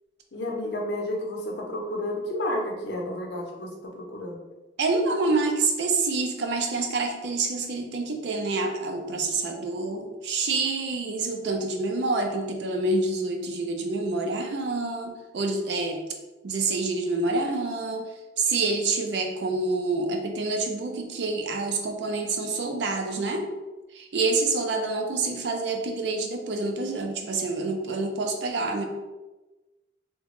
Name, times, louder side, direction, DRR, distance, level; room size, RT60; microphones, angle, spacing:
voice 1, 0.3-4.4, left 1 dB, 70° left, -1 dB, 0.6 m, -31 dB
voice 2, 4.8-16.0 16.4-18.1 18.4-23.5 23.9-28.8, right 3 dB, 70° right, 3 dB, 0.4 m, -27 dB
2.9 x 2.2 x 2.9 m, 1.1 s
head